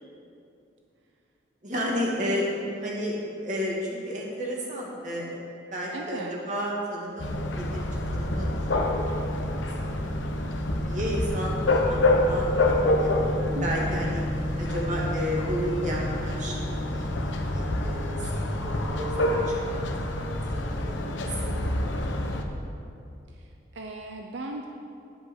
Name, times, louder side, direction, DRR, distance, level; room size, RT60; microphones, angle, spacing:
voice 1, 1.6-2.5 2.8-5.4 5.7-10.3 10.8-13.2 13.6-14.2 14.6-17.1 17.5-20.1 20.5-21.2 21.4-21.5 21.9-22.3, equal, 40° right, -3 dB, 2.1 m, -33 dB
voice 2, 2.3-2.8 5.9-6.3 13.5-14.1 23.3-24.7, right 2 dB, 80° right, 2 dB, 0.7 m, -38 dB
sound 1, 7.2-22.4, left 1 dB, 90° left, 1.0 m, -27 dB
10.5 x 5.4 x 8.0 m, 2.6 s
head